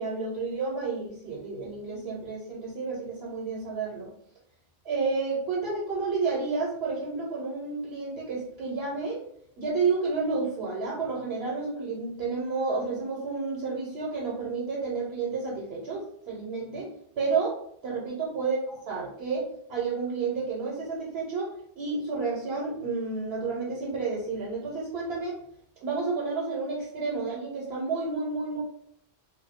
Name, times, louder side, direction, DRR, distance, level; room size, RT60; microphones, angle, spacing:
voice 1, 0.0-4.1 4.8-9.2 9.6-16.9 17.2-17.5 17.8-25.4 25.8-28.6, right 4 dB, 80° right, -4 dB, 1.0 m, -30 dB
2.6 x 2.2 x 3.5 m, 0.67 s
omnidirectional pair, 1.1 m